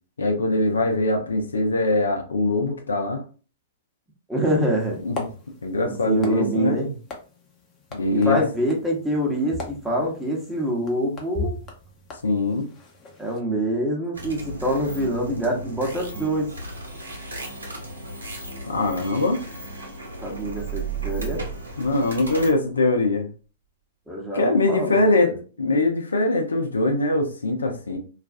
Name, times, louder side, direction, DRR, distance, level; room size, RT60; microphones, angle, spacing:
voice 1, 0.2-3.2 5.0-5.3 5.6-6.8 7.9-8.4 12.2-12.7 18.6-19.4 21.8-23.3 24.3-25.3 25.6-28.0, left 2 dB, 85° left, 4 dB, 0.5 m, -22 dB
voice 2, 4.3-5.0 5.8-6.9 8.1-11.6 13.2-16.5 20.2-21.4 24.1-25.4, right 1 dB, 5° right, -3 dB, 0.9 m, -25 dB
sound 1, 4.8-13.4, left 2 dB, 25° left, 0.7 m, -39 dB
sound 2, 14.1-22.5, equal, 85° right, 0.9 m, -36 dB
sound 3, 20.1-22.7, right 12 dB, 55° right, 0.3 m, -34 dB
2.4 x 2.3 x 2.4 m, 0.37 s
hypercardioid pair, 110°, 0 cm